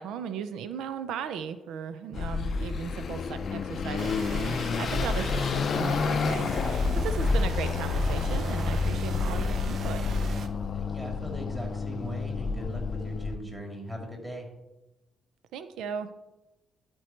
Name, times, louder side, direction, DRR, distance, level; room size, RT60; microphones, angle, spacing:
voice 1, 0.0-10.0 15.5-16.1, right 7 dB, 85° right, 11 dB, 0.5 m, -37 dB
Car passing by / Accelerating revving vroom, 2.1-13.4, left 4 dB, 55° left, 0.5 m, -29 dB
sound 1, 4.0-10.5, right 4 dB, 60° right, 0.8 m, -39 dB
voice 2, 10.7-14.5, equal, 10° right, 0 dB, 2.7 m, -39 dB
12.0 x 4.5 x 4.4 m, 1.0 s
cardioid pair, 90°, 0 cm